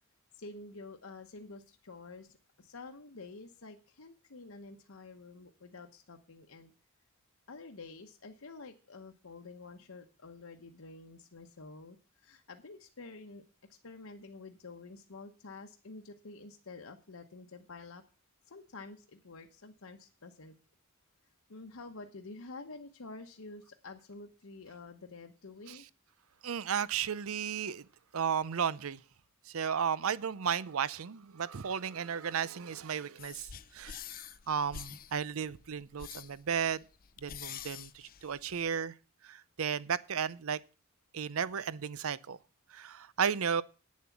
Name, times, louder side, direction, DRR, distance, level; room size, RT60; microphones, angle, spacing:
voice 1, 0.3-6.7 7.5-13.4 13.8-18.0 18.5-20.5 21.5-25.9, left 3 dB, 70° left, 1.0 m, -49 dB
voice 2, 26.4-27.9 28.1-29.0 29.5-34.0 34.5-36.8 37.2-38.9 39.2-40.6 41.1-42.4 42.7-43.6, right 7 dB, 75° right, 0.6 m, -34 dB
sound 1, 33.2-38.8, left 8 dB, 45° left, 0.6 m, -47 dB
9.6 x 7.4 x 7.1 m
head